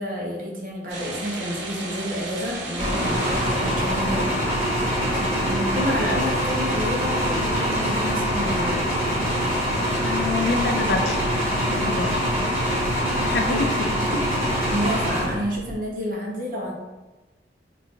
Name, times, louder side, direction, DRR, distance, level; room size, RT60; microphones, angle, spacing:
voice 1, 0.0-8.8 13.5-13.6 13.9-14.1 14.7-16.7, equal, 50° right, -2 dB, 0.8 m, -29 dB
sound 1, 0.9-4.5, right 2 dB, 80° right, 0.7 m, -35 dB
sound 2, 2.8-15.8, equal, 10° right, 1.4 m, -24 dB
voice 2, 10.0-11.2 11.7-12.2 13.2-13.7 14.1-14.3, left 4 dB, 65° left, 5 dB, 0.4 m, -26 dB
3.3 x 2.4 x 3.7 m, 1.1 s
head